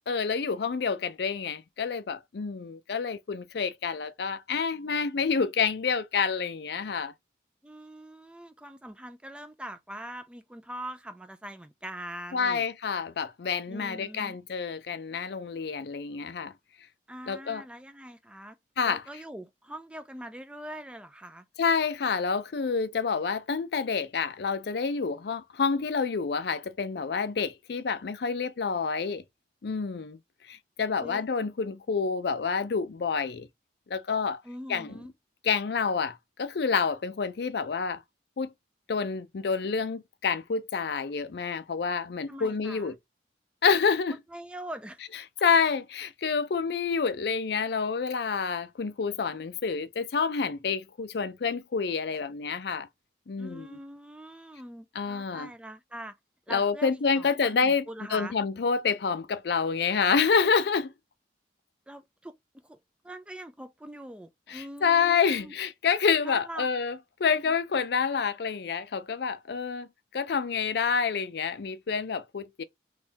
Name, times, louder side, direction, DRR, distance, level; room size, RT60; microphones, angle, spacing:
voice 1, 0.1-7.1 12.3-16.5 17.3-17.6 18.8-19.0 21.6-29.2 29.6-30.2 30.5-33.5 33.9-34.4 34.7-35.0 35.4-38.0 38.4-38.5 38.9-43.0 43.6-44.2 45.4-52.9 53.3-53.8 54.9-55.5 56.5-57.8 58.1-60.9 64.5-69.9 70.1-72.6, left 5 dB, 60° left, 0.4 m, -28 dB
voice 2, 7.6-12.6 13.7-14.4 17.1-18.6 18.8-21.4 31.0-31.2 34.4-35.1 42.3-42.9 44.3-45.0 53.4-56.1 56.5-58.3 61.9-62.3 62.6-62.8 63.0-65.5 66.2-66.7 67.3-67.5, right 1 dB, 5° right, 0.3 m, -42 dB
3.5 x 3.1 x 2.8 m
head